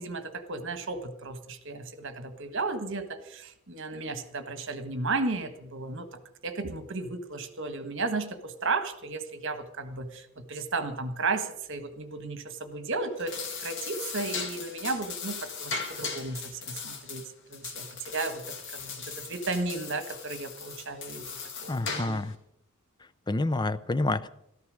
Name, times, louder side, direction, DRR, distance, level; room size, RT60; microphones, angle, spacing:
voice 1, 0.0-6.1 6.4-17.2 17.5-22.2, right 3 dB, 60° right, 10 dB, 1.5 m, -34 dB
sound 1, 13.1-22.3, left 5 dB, 60° left, 2.3 m, -38 dB
voice 2, 21.7-22.4 23.3-24.3, left 2 dB, 20° left, 14 dB, 0.5 m, -28 dB
14.0 x 13.0 x 6.3 m, 0.78 s
head